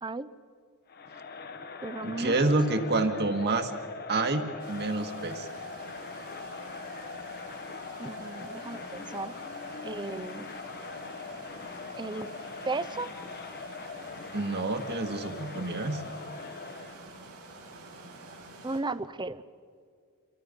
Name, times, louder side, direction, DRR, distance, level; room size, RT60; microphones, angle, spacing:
voice 1, 0.0-0.3 1.8-2.4 2.7-2.8 8.0-9.3 9.8-10.5 12.0-12.3 12.6-13.1 18.6-19.4, right 3 dB, 20° right, 14 dB, 0.6 m, -35 dB
Crowd, 0.9-17.1, left 4 dB, 45° left, 1.1 m, -42 dB
voice 2, 2.0-3.7 4.1-5.5 14.3-16.0, right 2 dB, 50° right, 7 dB, 1.7 m, -28 dB
sound 1, 4.6-18.8, right 2 dB, 85° right, 7.5 m, -48 dB
28.5 x 23.5 x 5.3 m, 2.2 s
head